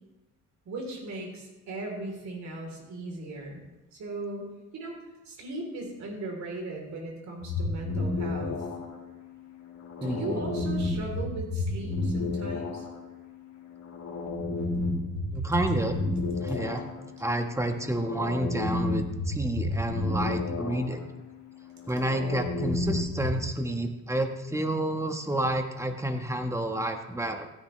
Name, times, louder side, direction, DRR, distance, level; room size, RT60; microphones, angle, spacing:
voice 1, 0.7-3.6 3.9-5.0 5.3-8.7 10.0-12.9, right 2 dB, 65° right, 1 dB, 3.8 m, -37 dB
sound 1, 7.4-23.5, left 2 dB, 70° left, 3.4 m, -32 dB
voice 2, 10.0-10.4 15.3-16.0 16.4-16.8 17.2-21.0 21.9-27.5, right 1 dB, 10° right, 5 dB, 1.4 m, -30 dB
16.0 x 9.9 x 3.3 m, 1.1 s
cardioid pair, 90°, 30 cm